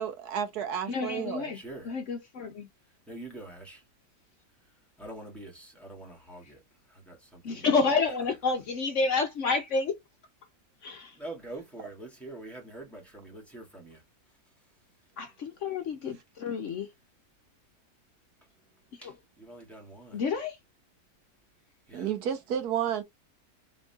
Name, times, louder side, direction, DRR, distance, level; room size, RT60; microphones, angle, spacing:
voice 1, 0.0-1.5 21.9-23.0, right 9 dB, 85° right, 1.4 m, -31 dB
voice 2, 0.9-1.6 1.8-2.7 6.4-6.5 7.4-10.0 10.8-11.2 15.2-16.9 18.9-19.2 20.1-20.6, left 4 dB, 60° left, 0.9 m, -29 dB
voice 3, 1.5-1.9 3.1-3.8 5.0-6.6 6.9-7.7 11.2-14.0 19.0-20.2 21.9-22.1, right 2 dB, ahead, 1.8 m, -45 dB
3.8 x 3.6 x 2.4 m
omnidirectional pair, 1.6 m